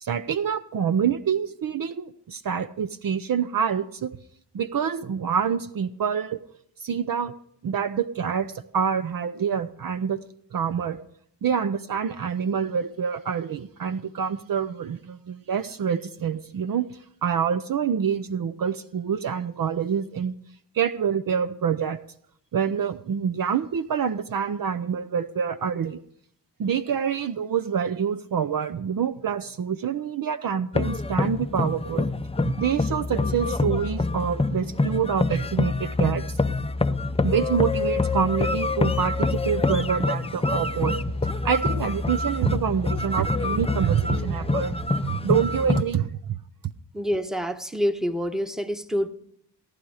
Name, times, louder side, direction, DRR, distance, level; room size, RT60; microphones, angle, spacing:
voice 1, 0.0-4.1 4.5-6.4 6.8-7.3 7.6-10.2 10.5-11.0 11.4-20.3 20.7-22.0 22.5-26.0 26.6-32.1 32.4-36.4 37.2-41.0 41.4-46.4, right 7 dB, 55° right, 12 dB, 0.7 m, -26 dB
sound 1, 30.7-45.8, left 3 dB, 15° left, 0.6 m, -26 dB
voice 2, 46.9-49.1, equal, ahead, 9 dB, 1.2 m, -27 dB
17.5 x 10.5 x 4.9 m, 0.71 s
cardioid pair, 55°, 42 cm